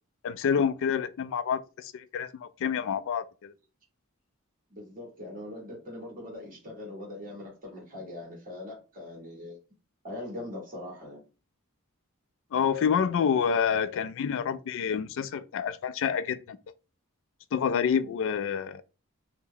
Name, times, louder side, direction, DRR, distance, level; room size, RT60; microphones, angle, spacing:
voice 1, 0.2-3.5 12.5-16.6 17.5-18.8, left 7 dB, 65° left, 0.3 m, -28 dB
voice 2, 4.7-9.6 10.0-11.2, left 1 dB, 40° right, 1.4 m, -41 dB
2.7 x 2.1 x 3.7 m
head